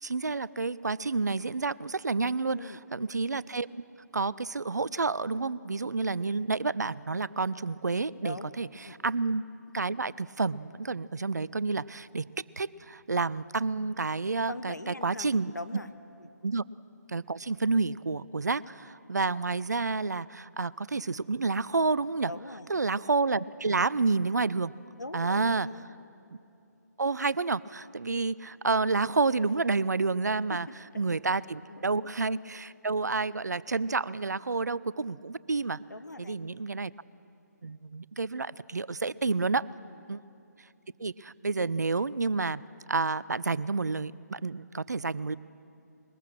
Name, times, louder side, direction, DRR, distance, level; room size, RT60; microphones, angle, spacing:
voice 1, 0.0-3.8 4.1-8.7 9.0-9.4 9.7-12.3 12.6-15.5 16.4-16.6 17.1-22.3 22.7-24.7 25.1-25.7 27.0-30.7 31.0-35.8 36.2-36.9 37.6-39.7 40.1-40.2 41.0-42.6 42.9-45.4, right 3 dB, 75° right, 20 dB, 0.5 m, -29 dB
voice 2, 14.5-15.9 16.2-16.3 22.3-22.7 25.0-25.9 30.5-31.0 31.7-31.8 35.8-36.6 39.7-40.0, left 2 dB, 85° left, 11 dB, 1.0 m, -42 dB
21.5 x 20.5 x 6.2 m, 2.7 s
figure-of-eight pair, 140°, 9 cm